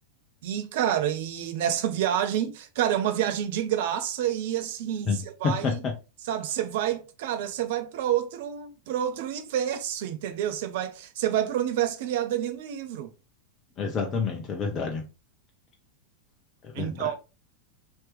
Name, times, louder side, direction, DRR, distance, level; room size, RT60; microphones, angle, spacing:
voice 1, 0.4-5.8 6.3-13.1 16.7-17.2, right 10 dB, 50° right, 0.4 m, -28 dB
voice 2, 5.4-5.9 13.8-15.1 16.6-17.1, left 5 dB, 30° left, 0.7 m, -28 dB
3.2 x 2.9 x 3.2 m
figure-of-eight pair, 90°, 0 cm